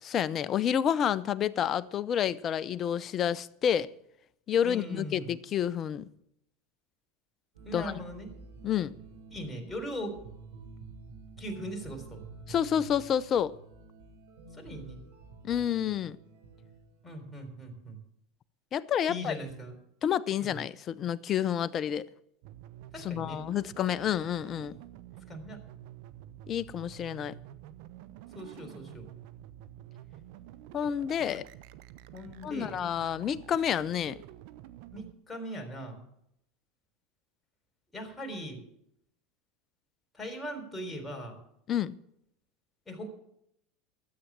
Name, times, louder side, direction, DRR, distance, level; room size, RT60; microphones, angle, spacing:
voice 1, 0.0-3.9 4.5-6.1 7.7-7.9 8.6-8.9 12.5-13.5 15.4-16.2 18.7-19.4 20.0-22.0 23.0-24.7 26.5-27.3 30.7-31.4 32.4-34.2 41.7-41.9, left 9 dB, 40° left, 0.6 m, -29 dB
voice 2, 4.6-5.3 7.7-8.4 9.3-10.2 11.4-12.2 14.5-15.0 17.0-18.0 19.1-19.8 20.4-20.6 22.9-23.4 25.3-25.6 28.3-29.1 32.1-32.8 34.9-36.0 37.9-38.6 40.1-41.4 42.9-43.1, equal, 15° left, 3.7 m, -40 dB
sound 1, 7.5-17.1, right 4 dB, 85° right, 4.0 m, -49 dB
sound 2, 22.4-35.1, right 12 dB, 65° right, 0.8 m, -49 dB
13.5 x 8.4 x 7.4 m
hypercardioid pair, 90°, 0 cm